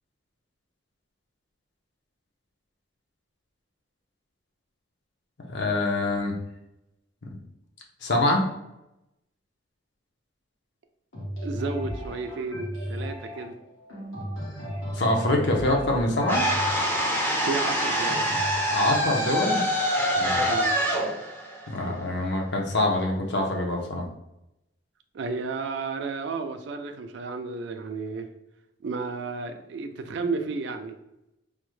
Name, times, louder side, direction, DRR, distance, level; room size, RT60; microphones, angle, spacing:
voice 1, 5.5-6.3 8.0-8.5 15.0-16.4 18.7-19.6 20.2-20.4 21.7-24.0, left 2 dB, 55° left, 1 dB, 0.6 m, -25 dB
sound 1, 11.1-19.0, equal, 85° left, 1.2 m, -36 dB
voice 2, 11.4-13.5 17.5-18.3 20.5-20.8 25.1-28.3 28.8-31.0, right 4 dB, 60° right, 6 dB, 0.3 m, -32 dB
sound 2, 16.3-22.4, equal, 10° left, 0.4 m, -25 dB
3.4 x 2.0 x 3.1 m, 0.88 s
head